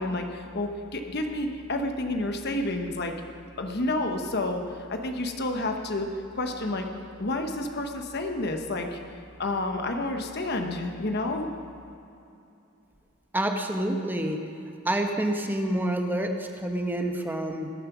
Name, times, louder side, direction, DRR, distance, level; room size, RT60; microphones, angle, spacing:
voice 1, 0.0-3.1 3.6-6.1 6.4-6.9 7.2-9.0 9.4-11.5, left 2 dB, 55° left, 4 dB, 1.1 m, -30 dB
voice 2, 13.3-14.4 14.8-17.7, right 1 dB, 10° right, 3 dB, 1.0 m, -28 dB
20.0 x 7.6 x 6.1 m, 2.7 s
head